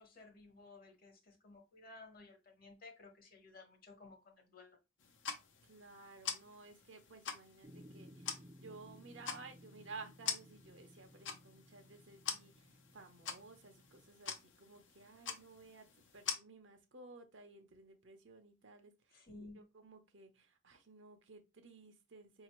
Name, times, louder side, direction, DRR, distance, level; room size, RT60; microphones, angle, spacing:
voice 1, 0.0-4.8 19.1-19.7, left 3 dB, 50° left, 1.1 m, -56 dB
sound 1, 5.0-16.4, left 7 dB, 75° left, 0.7 m, -46 dB
voice 2, 5.6-22.4, right 3 dB, 70° right, 0.8 m, -56 dB
sound 2, 7.6-14.1, equal, 25° right, 0.5 m, -59 dB
5.0 x 2.8 x 3.0 m
head